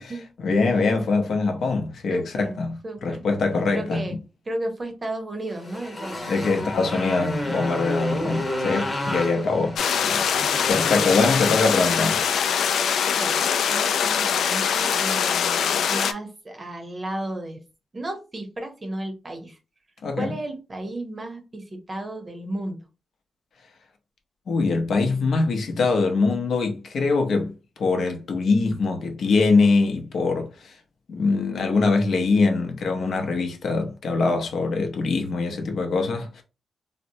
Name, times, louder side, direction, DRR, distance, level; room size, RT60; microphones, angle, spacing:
voice 1, 0.4-4.2 6.3-9.7 10.0-10.2 10.7-12.2 20.0-20.3 24.5-27.5 27.8-30.8 31.1-36.4, left 3 dB, 65° left, 0.7 m, -23 dB
voice 2, 2.1-3.3 3.7-4.1 4.5-7.2 9.4-9.8 13.1-17.6 17.9-19.6 20.1-22.8, right 1 dB, 25° right, 0.7 m, -34 dB
Motorcycle, 5.5-12.9, left 1 dB, 20° left, 1.1 m, -31 dB
sound 1, 9.8-16.1, left 7 dB, 90° left, 0.3 m, -23 dB
4.0 x 2.1 x 2.6 m
wide cardioid pair, 150°, 0 cm